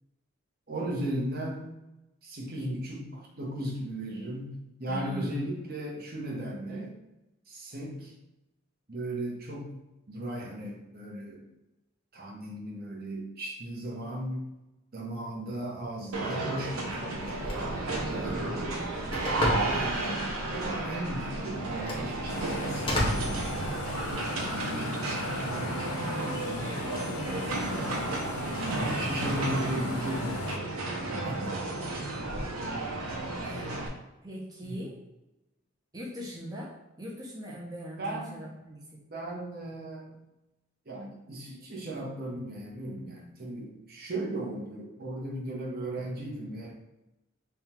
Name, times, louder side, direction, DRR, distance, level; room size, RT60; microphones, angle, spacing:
voice 1, 0.7-1.7 2.2-7.0 7.5-8.1 8.9-9.7 10.1-11.4 12.1-14.5 14.9-17.8 18.0-18.9 19.5-27.0 27.6-28.1 28.9-30.8 31.1-31.6 33.6-33.9 34.6-34.8 38.0-38.4 39.1-40.1 40.9-46.8, right 1 dB, 45° right, -1 dB, 0.9 m, -37 dB
voice 2, 4.9-5.4 25.8-26.6 27.2-28.5 32.3-32.5 33.4-33.7 34.2-35.0 35.9-38.8, equal, 20° right, -3 dB, 0.7 m, -41 dB
sound 1, 16.1-33.9, right 2 dB, 85° right, 0.7 m, -33 dB
Telephone, 17.2-24.1, left 1 dB, 25° left, 0.8 m, -35 dB
sound 2, 22.3-30.6, left 4 dB, 85° left, 0.4 m, -39 dB
3.5 x 2.4 x 4.3 m, 0.96 s
head